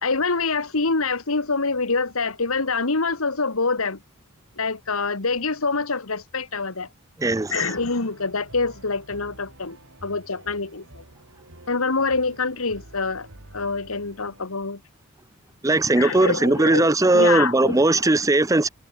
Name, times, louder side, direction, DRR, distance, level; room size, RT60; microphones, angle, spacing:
voice 1, 0.0-4.0 4.6-6.9 7.5-9.8 10.0-11.0 11.7-13.3 13.5-14.8 16.0-18.0, left 4 dB, 70° left, 1.8 m, -25 dB
voice 2, 7.2-7.6 15.6-18.7, right 2 dB, 15° right, 0.6 m, -19 dB
sound 1, 7.3-14.5, right 1 dB, 65° right, 4.0 m, -48 dB
head